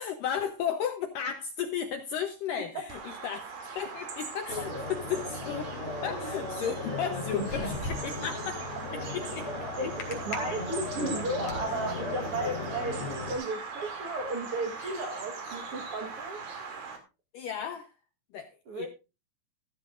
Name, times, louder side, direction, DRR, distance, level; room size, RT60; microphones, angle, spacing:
voice 1, 0.0-5.7 6.0-8.7 8.9-9.5 14.8-14.9 17.3-17.9 18.3-18.5 18.7-18.9, left 8 dB, 80° left, 6 dB, 1.9 m, -34 dB
Bird vocalization bird call bird song, 2.9-17.0, right 4 dB, 55° right, 4.2 m, -41 dB
sound 1, 4.5-13.3, left 2 dB, 20° left, 3.9 m, -37 dB
sound 2, 7.1-8.3 10.0-10.4 11.0-11.6, left 2 dB, 45° left, 3.3 m, -34 dB
voice 2, 9.8-16.4 18.7-18.9, right 2 dB, 85° right, 4 dB, 1.2 m, -34 dB
14.5 x 13.5 x 2.5 m, 0.29 s
omnidirectional pair, 5.0 m